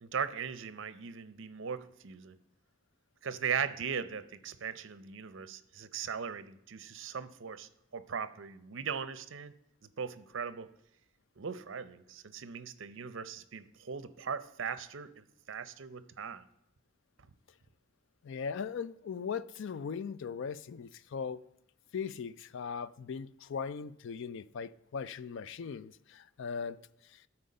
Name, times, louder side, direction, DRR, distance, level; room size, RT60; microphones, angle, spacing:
voice 1, 0.0-2.4 3.2-9.5 10.0-10.7 11.4-16.4, right 6 dB, 65° right, 0.6 m, -39 dB
voice 2, 18.2-21.4 21.9-26.8 27.1-27.2, left 6 dB, 65° left, 0.4 m, -39 dB
12.5 x 4.4 x 5.3 m
head